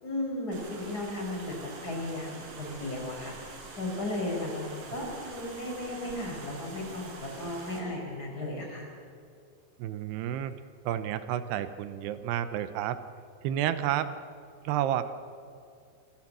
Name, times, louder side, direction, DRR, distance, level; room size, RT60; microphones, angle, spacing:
voice 1, 0.0-8.9, left 1 dB, 20° left, -1 dB, 4.7 m, -35 dB
sound 1, 0.5-7.8, right 3 dB, 55° right, 4.5 m, -45 dB
voice 2, 9.8-10.5 10.8-13.0 13.4-14.1 14.6-15.1, right 11 dB, 85° right, 12 dB, 2.9 m, -30 dB
26.5 x 13.5 x 7.5 m, 2.3 s
omnidirectional pair, 4.9 m